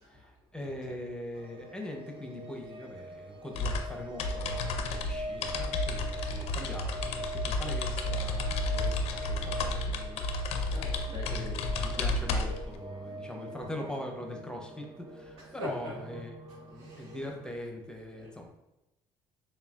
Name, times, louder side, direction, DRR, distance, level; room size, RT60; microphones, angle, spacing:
voice 1, 0.1-10.3 11.3-16.3 16.7-18.5, left 1 dB, 5° left, 2 dB, 0.7 m, -42 dB
voice 2, 0.6-1.0 10.7-11.5 11.8-12.1 15.4-16.2 16.8-17.2 18.2-18.3, left 1 dB, 85° right, -2 dB, 1.2 m, -43 dB
sound 1, 1.3-17.5, equal, 50° right, 0.5 m, -43 dB
sound 2, 3.5-12.8, left 2 dB, 75° left, 0.5 m, -32 dB
6.8 x 2.3 x 2.4 m, 0.95 s
supercardioid pair, 75°, 11 cm